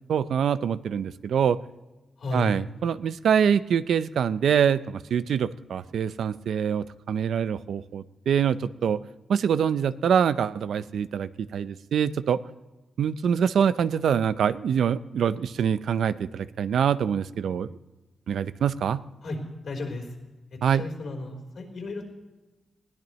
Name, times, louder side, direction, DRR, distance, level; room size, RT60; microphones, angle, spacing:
voice 1, 0.1-1.6 2.3-9.0 9.3-12.4 13.0-17.8 18.3-19.0 20.6-20.8, right 8 dB, 90° right, 14 dB, 0.5 m, -25 dB
voice 2, 2.2-2.5 19.2-19.4 19.6-20.1 20.5-22.1, left 2 dB, 70° left, 2 dB, 4.1 m, -33 dB
21.0 x 16.5 x 3.2 m, 1.1 s
wide cardioid pair, 105°, 0 cm